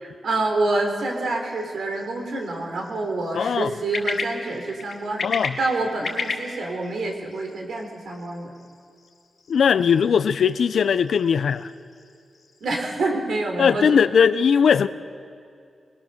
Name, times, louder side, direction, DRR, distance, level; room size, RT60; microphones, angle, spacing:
voice 1, 0.2-5.3 5.6-8.5 12.6-14.0, right 2 dB, 80° right, 3.6 m, -27 dB
sound 1, 1.1-12.7, left 4 dB, 65° left, 2.4 m, -36 dB
voice 2, 3.3-3.7 5.2-5.6 9.5-11.7 13.6-14.9, left 7 dB, 80° left, 0.6 m, -19 dB
21.0 x 20.5 x 6.7 m
wide cardioid pair, 105°, 0 cm